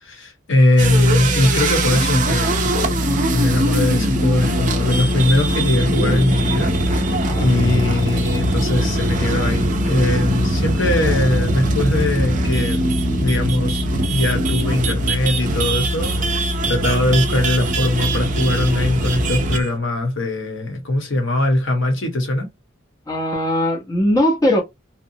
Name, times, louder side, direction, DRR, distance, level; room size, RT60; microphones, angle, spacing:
voice 1, 0.0-12.8 13.2-22.5, left 2 dB, 70° left, 1.0 m, -20 dB
sound 1, 0.8-19.6, left 2 dB, 50° left, 0.4 m, -25 dB
sound 2, 0.8-19.8, right 3 dB, 40° right, 0.5 m, -23 dB
voice 2, 23.1-24.6, left 1 dB, 20° left, 0.7 m, -19 dB
2.8 x 2.1 x 2.7 m
head